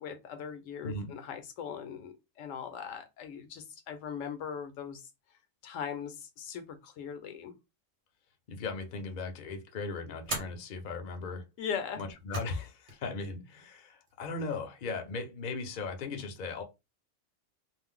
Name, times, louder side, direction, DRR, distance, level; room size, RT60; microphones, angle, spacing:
voice 1, 0.0-5.0 5.6-7.5 11.6-12.0, left 7 dB, 75° left, 0.9 m, -39 dB
voice 2, 0.8-1.1 8.5-11.5 12.0-16.6, left 3 dB, 50° left, 0.6 m, -38 dB
sound 1, 8.7-9.1 10.2-10.6 11.9-12.6 12.9-13.0 14.1-14.6, right 1 dB, 40° right, 1.0 m, -39 dB
2.5 x 2.0 x 3.6 m
omnidirectional pair, 1.4 m